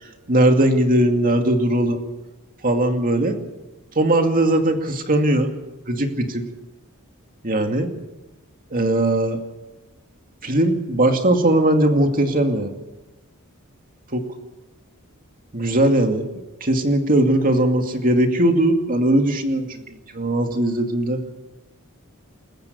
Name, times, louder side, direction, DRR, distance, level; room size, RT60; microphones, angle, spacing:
voice 1, 0.3-2.0 2.6-3.4 4.0-5.5 5.9-6.5 7.4-7.9 8.7-9.4 10.4-12.7 14.1-14.2 15.5-16.2 16.6-19.8 20.1-21.2, right 1 dB, 40° right, 4 dB, 2.4 m, -19 dB
28.5 x 14.5 x 6.9 m, 1.0 s
head